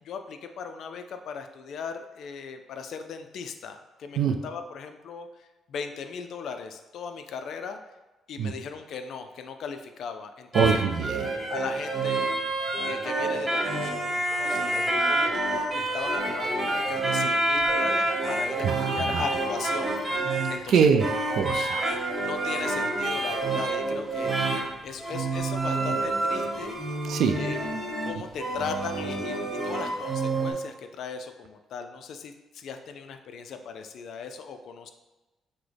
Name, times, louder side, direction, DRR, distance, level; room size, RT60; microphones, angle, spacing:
voice 1, 0.0-7.8 8.3-10.9 11.5-12.3 12.8-21.1 22.2-24.5 24.8-26.8 27.3-27.6 28.0-29.4 29.6-34.9, left 5 dB, 70° left, 7 dB, 0.4 m, -38 dB
sound 1, 10.5-30.5, right 2 dB, 25° right, 1.1 m, -28 dB
voice 2, 10.5-11.5 18.6-19.2 20.7-21.1 21.3-21.9 27.1-27.4, right 6 dB, 70° right, 6 dB, 0.4 m, -24 dB
5.9 x 2.1 x 3.3 m, 1.1 s
cardioid pair, 90°, 0 cm